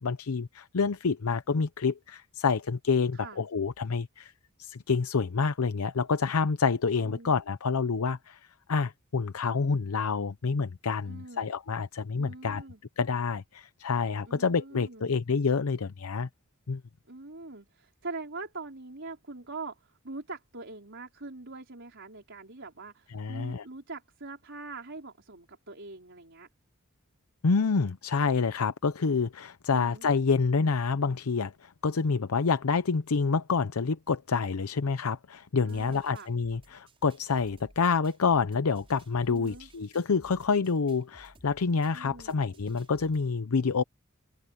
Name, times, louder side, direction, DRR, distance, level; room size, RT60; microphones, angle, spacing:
voice 1, 0.0-4.3 4.6-8.4 8.7-12.6 13.0-16.3 16.7-16.8 23.1-23.6 27.4-43.8, left 5 dB, 85° left, 0.7 m, -28 dB
voice 2, 7.0-7.3 11.0-11.5 12.2-12.8 14.2-15.2 17.1-26.5 29.7-30.1 35.7-36.3 39.3-39.7 41.9-42.4, right 3 dB, 60° right, 4.6 m, -43 dB
sound 1, 35.7-43.2, right 1 dB, 25° right, 5.6 m, -58 dB
open air
head